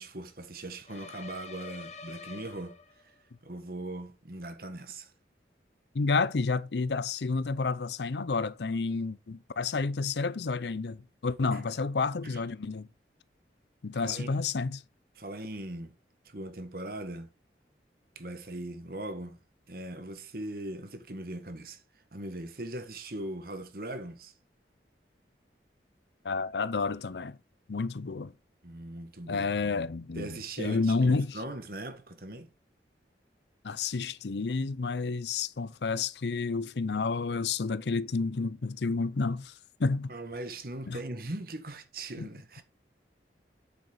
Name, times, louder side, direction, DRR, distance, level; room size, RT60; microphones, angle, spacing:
voice 1, 0.0-2.8 3.4-5.1 11.5-11.6 12.2-12.4 13.9-14.4 15.2-15.9 16.2-17.3 18.1-19.4 19.7-21.8 22.1-24.3 28.6-29.4 30.1-32.5 40.1-42.6, right 1 dB, 55° right, 1.5 m, -40 dB
sound 1, 0.9-3.2, left 4 dB, 40° left, 1.1 m, -46 dB
voice 2, 5.9-12.9 13.8-14.8 26.2-27.4 27.7-28.3 29.3-31.4 33.6-40.1 40.9-41.0 42.2-42.3, left 4 dB, 75° left, 0.6 m, -30 dB
8.3 x 7.4 x 3.9 m
head